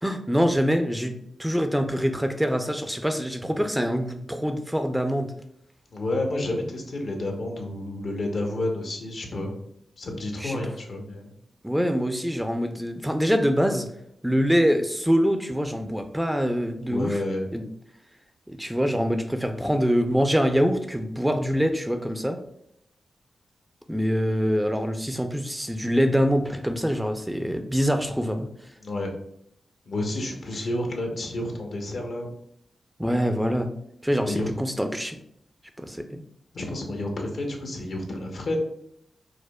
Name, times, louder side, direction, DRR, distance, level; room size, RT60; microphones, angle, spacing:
voice 1, 0.0-5.3 10.4-10.6 11.6-13.9 14.2-17.2 17.5-17.6 18.5-22.4 23.9-28.5 33.0-33.7 34.0-35.2 35.8-36.2, equal, 5° right, 6 dB, 0.4 m, -24 dB
voice 2, 5.9-9.5 10.0-11.3 16.8-17.5 28.8-29.1 29.9-32.3 34.3-34.5 36.5-38.6, left 1 dB, 65° left, 2 dB, 0.8 m, -30 dB
4.9 x 2.0 x 2.3 m, 0.73 s
cardioid pair, 55°, 0 cm